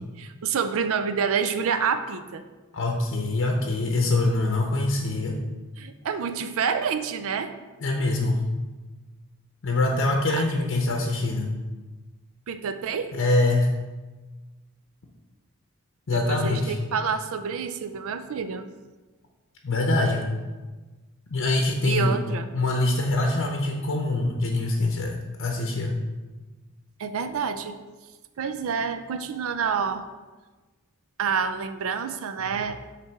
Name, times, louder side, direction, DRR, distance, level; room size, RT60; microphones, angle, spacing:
voice 1, 0.2-2.4 5.8-7.5 10.3-10.4 12.5-13.1 16.1-18.6 21.8-22.5 27.0-27.7 28.4-30.1 31.2-32.7, right 6 dB, 65° right, 10 dB, 0.4 m, -28 dB
voice 2, 2.7-5.4 7.8-8.4 9.6-11.5 13.1-13.7 16.1-16.8 19.6-20.3 21.3-22.2 22.5-25.9, left 2 dB, 60° left, 2 dB, 0.7 m, -24 dB
7.7 x 3.3 x 5.8 m, 1.2 s
head